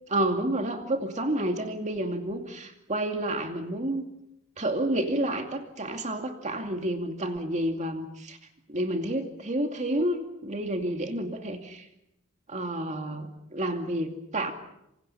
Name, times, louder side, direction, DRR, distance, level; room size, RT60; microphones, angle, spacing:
voice 1, 0.1-4.0 4.6-8.4 8.7-11.9 12.5-14.5, right 1 dB, 35° right, 4 dB, 2.5 m, -30 dB
27.5 x 26.5 x 5.7 m, 0.84 s
head